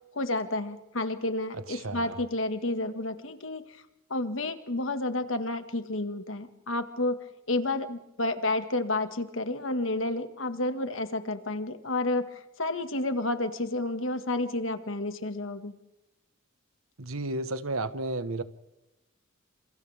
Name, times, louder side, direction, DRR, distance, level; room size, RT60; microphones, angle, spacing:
voice 1, 0.1-3.8 4.1-7.2 7.5-15.7, left 2 dB, 70° left, 8 dB, 1.9 m, -30 dB
voice 2, 1.7-2.2 17.0-18.4, right 2 dB, 90° right, 12 dB, 1.3 m, -32 dB
29.5 x 27.0 x 3.5 m, 0.98 s
head